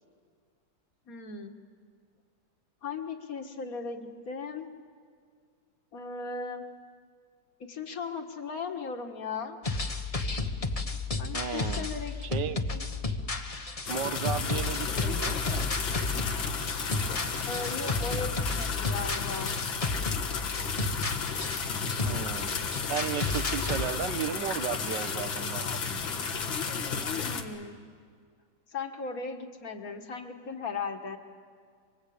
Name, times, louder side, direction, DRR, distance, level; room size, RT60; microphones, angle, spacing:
voice 1, 1.1-1.6 2.8-4.7 5.9-6.6 7.6-9.6 10.9-12.9 17.5-19.6 27.2-27.8 28.7-31.2, left 4 dB, 50° left, 5 dB, 2.0 m, -37 dB
sound 1, 9.6-23.9, left 3 dB, 20° left, 1.0 m, -33 dB
voice 2, 11.3-11.9 12.2-12.7 13.9-15.4 22.0-22.5 22.9-26.1, right 8 dB, 65° right, 10 dB, 1.8 m, -34 dB
sound 2, 13.9-27.4, left 5 dB, 90° left, 2.4 m, -33 dB
sound 3, 16.5-18.2 18.4-18.5 21.9-22.0 22.7-22.9 23.1-23.7 25.8-25.9 26.1-26.2, right 2 dB, 45° right, 3.8 m, -49 dB
25.5 x 24.5 x 8.7 m, 2.1 s
omnidirectional pair, 2.1 m